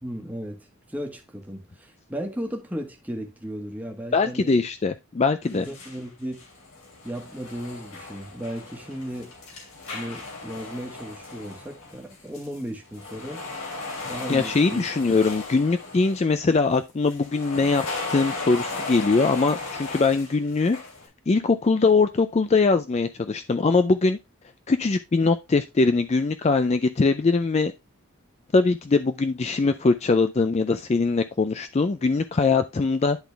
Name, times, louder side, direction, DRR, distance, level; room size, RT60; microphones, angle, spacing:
voice 1, 0.0-4.7 5.5-6.4 7.0-9.3 9.9-13.4 14.1-15.1, equal, 5° right, 1.2 m, -35 dB
voice 2, 4.1-5.7 14.3-20.8 21.3-24.2 24.7-27.7 28.5-33.2, left 4 dB, 30° left, 0.4 m, -22 dB
sound 1, 5.4-6.0 6.3-12.6 12.9-16.3 17.1-21.1, left 3 dB, 80° left, 2.8 m, -36 dB
10.5 x 3.9 x 3.3 m
head